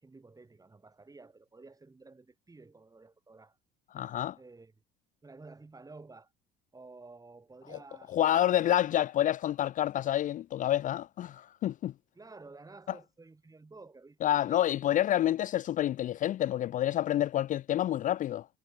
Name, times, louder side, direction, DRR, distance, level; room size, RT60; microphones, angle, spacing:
voice 1, 0.0-3.6 4.4-4.7 5.2-6.3 6.7-8.6 12.1-14.2 14.5-14.7, right 3 dB, 15° right, 7.2 m, -52 dB
voice 2, 3.9-4.4 8.1-11.9 12.9-13.0 14.2-18.5, left 12 dB, 40° left, 0.7 m, -28 dB
figure-of-eight pair, 60°, 21 cm